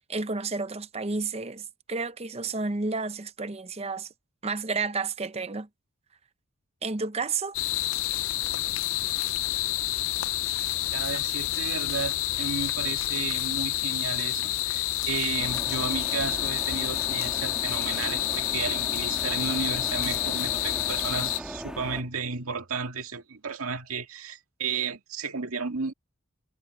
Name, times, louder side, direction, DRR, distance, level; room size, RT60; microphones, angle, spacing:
voice 1, 0.1-4.1 4.4-5.7 6.8-7.5, right 4 dB, 30° right, 0.7 m, -31 dB
sound 1, 7.5-21.4, left 15 dB, 70° left, 0.6 m, -29 dB
voice 2, 10.9-25.9, right 5 dB, 80° right, 2.0 m, -33 dB
sound 2, 15.4-22.0, equal, 5° right, 2.8 m, -39 dB
head